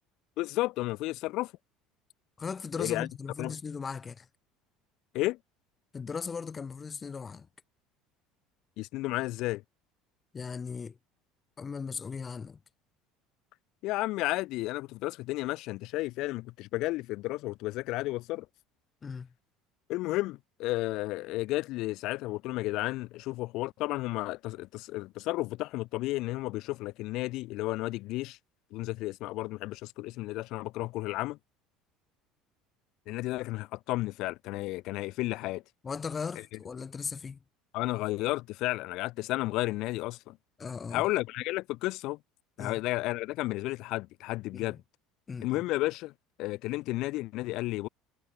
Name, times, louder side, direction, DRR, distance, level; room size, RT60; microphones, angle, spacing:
voice 1, 0.4-1.5 2.8-3.1 3.4-3.6 5.1-5.4 8.8-9.6 13.8-18.5 19.9-28.4 28.7-31.4 33.1-35.6 37.7-40.4 40.9-42.2 42.6-44.8 45.4-46.1 46.4-47.9, left 19 dB, 65° left, 1.0 m, -32 dB
voice 2, 2.4-4.3 5.9-7.5 10.3-11.0 11.6-12.6 19.0-19.3 35.8-37.4 40.6-41.1 42.6-42.8 44.5-44.7 45.3-45.5, left 5 dB, 25° left, 0.6 m, -37 dB
supercardioid pair, 120°, 0 cm